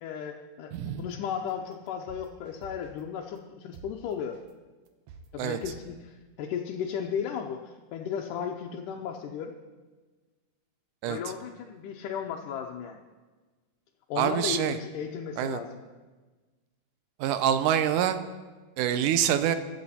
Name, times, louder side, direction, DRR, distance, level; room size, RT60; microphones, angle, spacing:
voice 1, 0.0-4.4 5.3-9.5 11.0-13.0 14.1-15.8, left 8 dB, 90° left, 1 dB, 2.3 m, -35 dB
sound 1, 0.7-0.9 1.3-1.5 1.9-3.0 3.4-3.5 3.7-3.9 4.3-4.5 4.9-5.3 5.6-5.8, right 7 dB, 70° right, 1.7 m, -47 dB
voice 2, 14.2-14.8 15.4-15.6 17.2-18.2 18.8-19.6, right 10 dB, 85° right, 10 dB, 2.3 m, -25 dB
22.5 x 7.7 x 4.2 m, 1.3 s
omnidirectional pair, 3.6 m